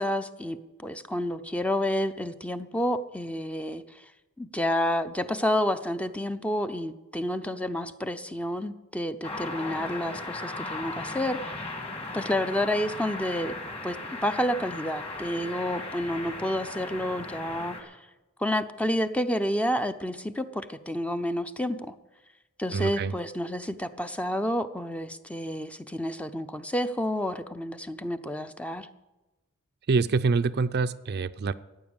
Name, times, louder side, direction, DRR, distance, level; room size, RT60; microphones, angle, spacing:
voice 1, 0.0-4.0 4.4-11.6 12.1-13.5 13.8-18.0 18.4-21.9 22.6-28.9, left 1 dB, 5° left, 10 dB, 0.5 m, -30 dB
sound 1, 9.2-17.8, left 2 dB, 30° left, 2.0 m, -37 dB
voice 2, 22.7-23.1 29.9-31.5, right 4 dB, 50° right, 13 dB, 0.4 m, -25 dB
14.5 x 9.3 x 7.2 m, 1.1 s
head